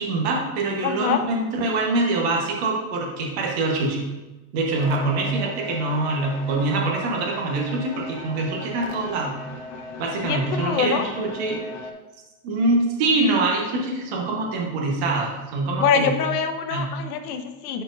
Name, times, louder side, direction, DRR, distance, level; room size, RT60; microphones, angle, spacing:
voice 1, 0.0-4.0 4.5-9.3 10.0-11.6 12.4-16.1 16.7-16.8, right 2 dB, 45° right, -1 dB, 1.2 m, -24 dB
voice 2, 0.8-1.2 10.2-11.1 15.8-17.8, left 7 dB, 70° left, 7 dB, 0.9 m, -24 dB
sound 1, 4.8-11.9, left 2 dB, 35° left, 0.4 m, -38 dB
10.5 x 4.5 x 2.6 m, 1.1 s
supercardioid pair, 180°, 46 cm